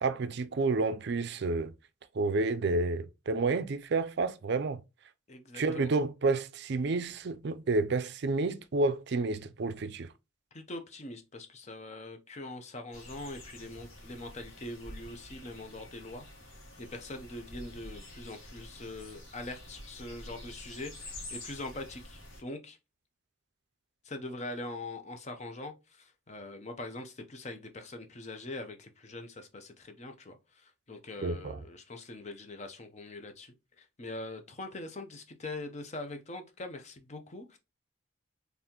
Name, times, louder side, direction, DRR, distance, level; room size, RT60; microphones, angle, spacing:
voice 1, 0.0-1.7 2.1-4.8 5.5-10.1 31.2-31.6, right 3 dB, 55° right, 0.4 m, -30 dB
voice 2, 5.3-5.9 10.5-16.3 16.8-22.8 24.0-37.6, left 2 dB, 35° left, 0.6 m, -43 dB
sound 1, 12.9-22.4, left 1 dB, 75° left, 2.1 m, -48 dB
4.1 x 3.4 x 2.9 m
head